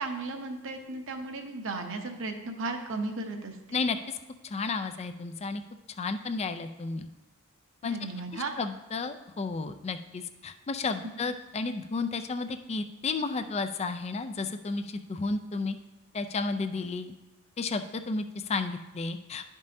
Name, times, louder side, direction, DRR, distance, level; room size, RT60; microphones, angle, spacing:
voice 1, 0.0-3.8 7.9-8.5 11.0-11.1, right 3 dB, 60° right, 4 dB, 0.8 m, -35 dB
voice 2, 3.7-4.2 4.4-5.6 6.0-7.1 7.8-8.0 8.3-15.8 16.1-17.1 17.6-19.4, left 4 dB, 30° left, 8 dB, 0.4 m, -32 dB
11.5 x 5.4 x 2.7 m, 1.1 s
head